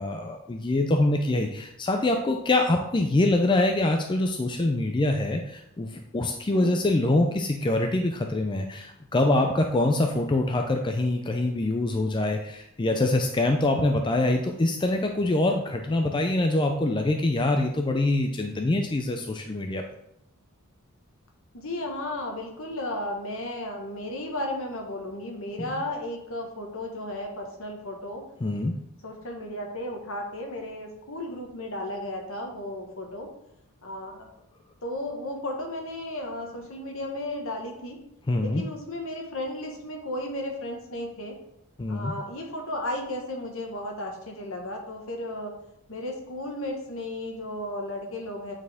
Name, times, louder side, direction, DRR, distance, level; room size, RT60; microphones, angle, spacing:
voice 1, 0.0-19.8 28.4-28.7 38.3-38.6 41.8-42.1, left 2 dB, 20° left, 3 dB, 0.4 m, -24 dB
voice 2, 6.5-6.8 21.5-28.2 29.0-33.3 33.8-34.3 34.8-38.0 38.4-41.3 41.9-45.5 45.9-48.5, left 1 dB, 65° left, 2 dB, 1.4 m, -34 dB
8.8 x 4.4 x 3.5 m, 0.81 s
head